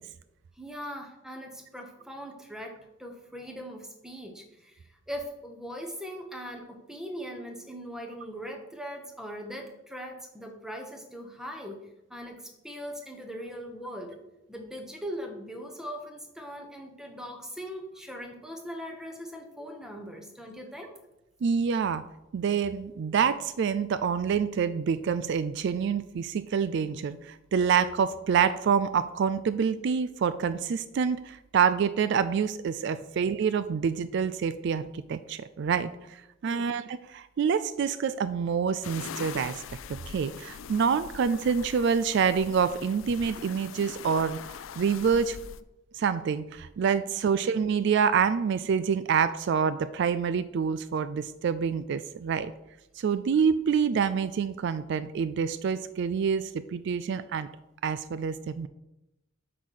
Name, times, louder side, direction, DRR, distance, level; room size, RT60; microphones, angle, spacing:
voice 1, 0.6-14.2 14.5-20.9 36.4-36.7, equal, 5° right, 3 dB, 1.1 m, -40 dB
voice 2, 21.4-22.1 22.3-39.6 39.9-44.4 44.8-45.4 45.9-52.5 53.0-57.5 57.8-58.7, right 6 dB, 60° right, 14 dB, 0.3 m, -27 dB
sound 1, 38.8-45.6, left 7 dB, 85° left, 0.4 m, -42 dB
8.4 x 4.1 x 6.3 m, 0.93 s
head